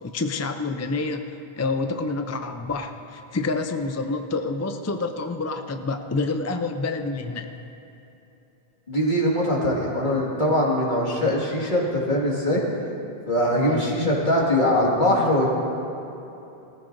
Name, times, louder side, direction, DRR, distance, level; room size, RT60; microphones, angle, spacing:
voice 1, 0.0-7.5 13.5-13.9, left 3 dB, 30° left, 6 dB, 0.3 m, -28 dB
voice 2, 8.9-12.6 13.3-15.5, left 1 dB, 50° left, -4 dB, 2.2 m, -22 dB
19.5 x 14.5 x 2.6 m, 3.0 s
omnidirectional pair, 1.0 m